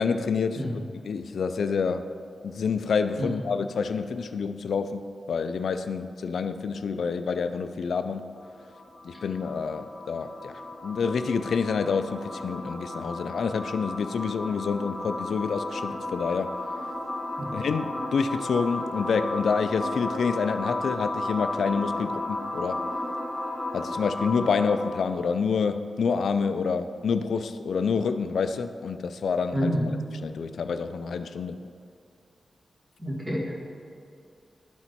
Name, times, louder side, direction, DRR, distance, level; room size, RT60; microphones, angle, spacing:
voice 1, 0.0-2.1 2.4-8.2 9.0-16.6 17.5-22.9 23.7-29.7 30.2-31.6, left 5 dB, 85° left, 9 dB, 0.3 m, -28 dB
sound 1, 8.4-25.0, left 2 dB, 20° left, 1.5 m, -34 dB
voice 2, 29.5-29.8 33.0-33.5, equal, 20° right, -4 dB, 1.8 m, -27 dB
11.5 x 4.4 x 4.1 m, 2.4 s
wide cardioid pair, 125°, 0 cm